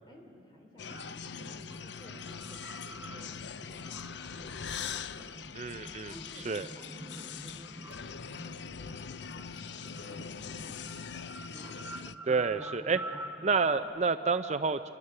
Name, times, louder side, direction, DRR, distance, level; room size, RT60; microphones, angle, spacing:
voice 1, 0.1-0.9 1.4-4.7 5.1-5.4 6.1-6.4 6.7-7.7 8.4-11.0, left 1 dB, 25° left, 1 dB, 3.2 m, -55 dB
sound 1, 0.8-12.2, left 6 dB, 65° left, 0.5 m, -42 dB
sound 2, 0.8-13.8, right 2 dB, 10° right, 0.9 m, -47 dB
voice 2, 5.6-6.1 6.4-6.7 12.3-13.0 13.4-14.9, right 4 dB, 35° right, 10 dB, 0.5 m, -29 dB
28.0 x 22.5 x 6.6 m, 2.8 s
head